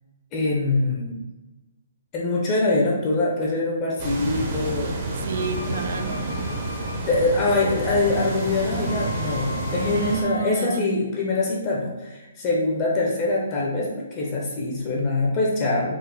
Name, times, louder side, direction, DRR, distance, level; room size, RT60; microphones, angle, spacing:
voice 1, 0.3-1.2 2.1-5.1 7.0-16.0, left 2 dB, 20° left, -2 dB, 0.6 m, -24 dB
sound 1, 4.0-10.2, right 2 dB, 25° right, 0.9 m, -29 dB
voice 2, 5.2-6.4 9.9-10.9, right 5 dB, 55° right, 9 dB, 0.3 m, -30 dB
sound 2, 5.3-10.8, left 3 dB, 70° left, 0.6 m, -39 dB
4.3 x 2.4 x 4.1 m, 1.1 s
hypercardioid pair, 165°, 0 cm